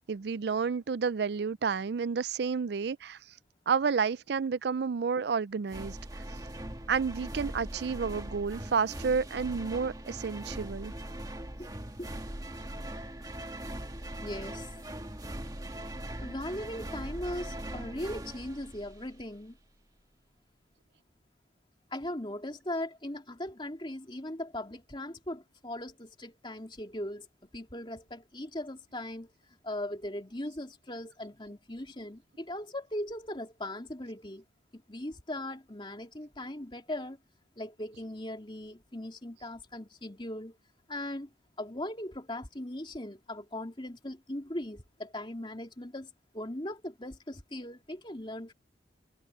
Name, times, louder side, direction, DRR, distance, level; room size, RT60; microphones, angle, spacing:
voice 1, 0.1-3.2 3.7-6.0 6.9-10.9, right 5 dB, 60° right, 0.4 m, -30 dB
sound 1, 5.7-19.3, right 1 dB, 20° right, 1.6 m, -41 dB
voice 2, 14.2-14.8 16.2-19.6 21.9-27.3 27.5-29.3 29.6-34.4 34.7-37.2 37.6-40.6 40.9-41.3 41.6-48.5, left 1 dB, 25° left, 2.9 m, -39 dB
head